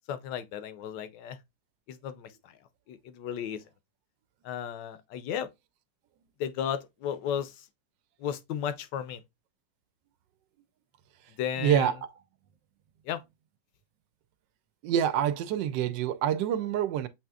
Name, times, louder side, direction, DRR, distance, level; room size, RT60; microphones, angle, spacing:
voice 1, 0.1-1.4 1.9-2.6 2.9-3.6 4.4-5.5 6.4-7.7 8.2-9.2 11.4-11.9 13.0-13.2, left 9 dB, 80° left, 1.3 m, -34 dB
voice 2, 11.6-12.0 14.8-17.1, right 10 dB, 85° right, 1.3 m, -26 dB
7.5 x 2.9 x 2.3 m
omnidirectional pair, 1.9 m